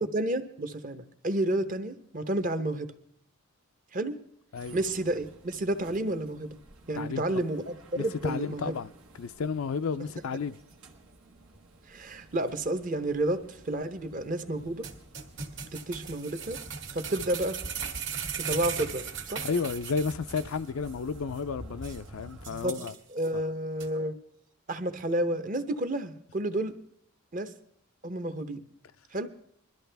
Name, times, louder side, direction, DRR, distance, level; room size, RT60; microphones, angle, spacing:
voice 1, 0.0-2.9 3.9-4.2 4.7-6.6 6.9-8.8 11.9-14.9 15.7-16.6 16.9-17.6 18.4-19.5 22.5-24.2 24.7-26.7 27.3-27.5 28.0-28.6 29.1-29.3, right 1 dB, 40° right, 0.8 m, -31 dB
sound 1, 4.5-22.7, right 1 dB, 85° right, 1.6 m, -51 dB
voice 2, 7.0-7.4 8.0-8.9 9.2-10.6 19.4-22.9 23.3-23.4, left 5 dB, 70° left, 0.4 m, -32 dB
sound 2, 14.8-20.6 20.9-21.0 21.4-21.5 21.8-22.0 22.4-23.3 23.8-23.9, right 6 dB, 55° right, 1.6 m, -37 dB
21.5 x 13.0 x 3.4 m
head